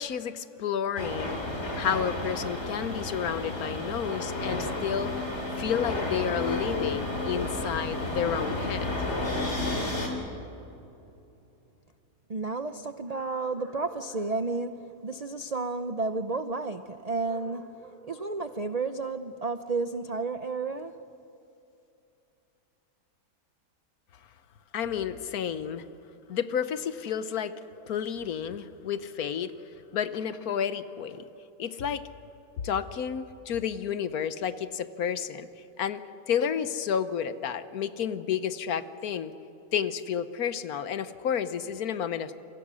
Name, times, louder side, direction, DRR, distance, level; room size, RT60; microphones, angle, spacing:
voice 1, 0.0-1.4 1.7-5.3 5.6-9.0 24.7-25.8 26.3-27.5 27.9-31.3 31.6-32.0 32.6-35.5 35.8-39.3 39.7-42.4, left 8 dB, 70° left, 13 dB, 1.4 m, -31 dB
sound 1, 1.0-10.1, left 2 dB, 45° left, 3.5 m, -31 dB
voice 2, 12.3-20.9, right 3 dB, 50° right, 10 dB, 0.4 m, -32 dB
28.0 x 24.0 x 6.3 m, 2.8 s
omnidirectional pair, 1.7 m